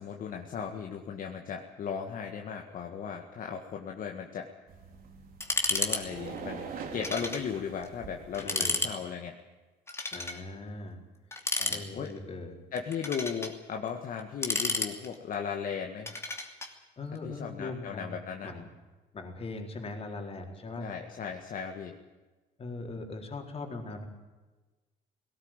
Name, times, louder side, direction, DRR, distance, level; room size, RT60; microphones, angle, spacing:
voice 1, 0.0-4.5 5.6-6.7 6.9-9.4 11.6-12.1 12.7-16.2 17.2-18.5 20.8-22.0, left 7 dB, 55° left, 3 dB, 1.9 m, -36 dB
sound 1, 4.7-8.4, right 6 dB, 60° right, 3.2 m, -43 dB
sound 2, 5.4-6.0 6.3-6.4 7.0-7.5 7.8-7.9 8.3-8.9 9.9-10.4 11.3-12.2 12.8-13.5 14.2-15.3 16.1-16.7, left 2 dB, 15° left, 2.8 m, -31 dB
voice 2, 8.4-8.8 10.1-11.0 11.7-12.6 17.0-18.2 18.4-18.7 19.1-20.9 22.6-24.0, left 3 dB, 35° left, 3 dB, 4.2 m, -40 dB
18.0 x 17.5 x 9.0 m, 1.2 s
cardioid pair, 110°, 17 cm